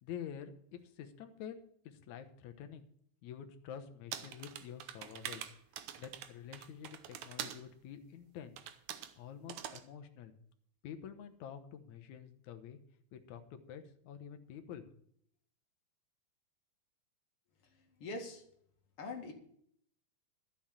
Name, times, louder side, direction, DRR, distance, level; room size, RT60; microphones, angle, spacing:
voice 1, 0.0-1.6 1.8-2.9 3.2-5.4 6.0-8.6 9.2-10.3 10.8-12.8 13.1-14.9, left 8 dB, 75° left, 7 dB, 2.4 m, -48 dB
sound 1, 4.1-7.6 8.6-9.1 9.5-9.8, right 10 dB, 75° right, 2.1 m, -44 dB
voice 2, 17.6-18.4 19.0-19.3, left 2 dB, 50° left, 3 dB, 2.6 m, -44 dB
12.5 x 7.1 x 7.3 m, 0.67 s
omnidirectional pair, 3.4 m